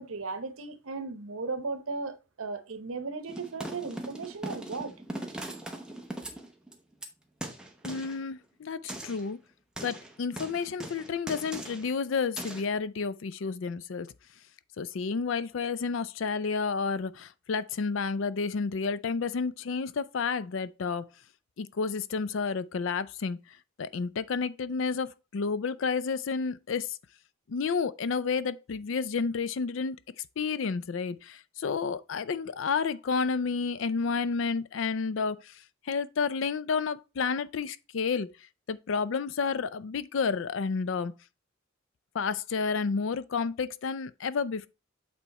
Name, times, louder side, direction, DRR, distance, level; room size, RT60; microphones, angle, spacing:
voice 1, 0.0-4.9, right 4 dB, 80° right, 0.9 m, -36 dB
sound 1, 3.3-7.1 7.4-8.2 8.9-9.3 9.8-11.9 12.4-12.6, right 1 dB, 5° right, 0.8 m, -40 dB
voice 2, 7.8-9.4 9.8-14.1 14.8-21.1 21.6-23.4 23.8-27.0 27.5-30.0 30.4-38.3 38.7-41.1 42.1-44.7, left 5 dB, 65° left, 0.4 m, -30 dB
8.2 x 3.4 x 4.1 m
head